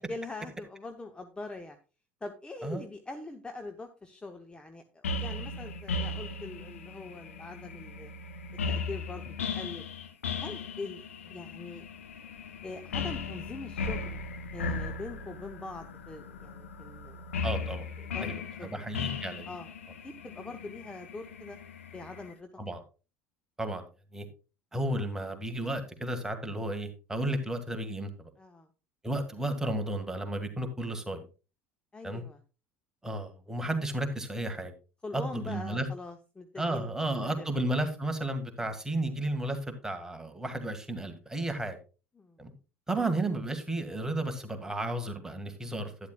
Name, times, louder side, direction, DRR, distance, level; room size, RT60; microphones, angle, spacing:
voice 1, 0.1-1.8 2.2-8.1 8.7-9.8 10.4-11.0 11.3-11.8 12.6-14.2 14.5-17.3 17.6-17.7 18.0-18.8 19.5-19.7 20.0-21.6 21.9-22.5 28.4-28.7 31.9-32.4 35.0-37.5 42.2-42.5, left 3 dB, 15° left, 1.0 m, -43 dB
sound 1, 5.0-22.3, left 4 dB, 75° left, 1.1 m, -37 dB
voice 2, 17.4-17.9 18.2-19.5 22.6-22.8 23.6-23.9 24.1-24.3 24.7-28.3 29.0-31.3 32.0-32.2 33.0-34.7 35.1-35.9 36.6-39.6 39.8-41.8 42.4-42.5 42.9-45.9, right 1 dB, 10° right, 1.9 m, -33 dB
11.5 x 10.0 x 2.4 m
figure-of-eight pair, 70°, 7 cm